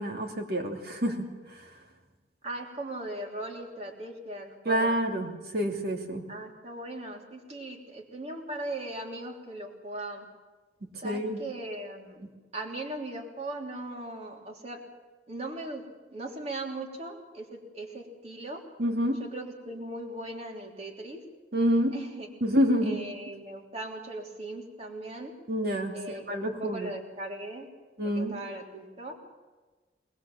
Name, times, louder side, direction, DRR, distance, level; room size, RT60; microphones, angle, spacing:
voice 1, 0.0-1.7 4.6-6.2 11.0-11.4 18.8-19.2 21.5-22.0 22.4-23.0 25.5-26.9 28.0-28.3, equal, 60° right, 2 dB, 2.9 m, -28 dB
voice 2, 2.4-5.0 6.3-10.3 11.0-12.2 12.5-14.8 15.3-18.6 19.2-21.2 21.9-22.3 22.8-25.3 25.9-27.7 28.0-29.2, right 1 dB, 40° right, 0 dB, 3.2 m, -39 dB
22.0 x 20.5 x 7.4 m, 1.3 s
head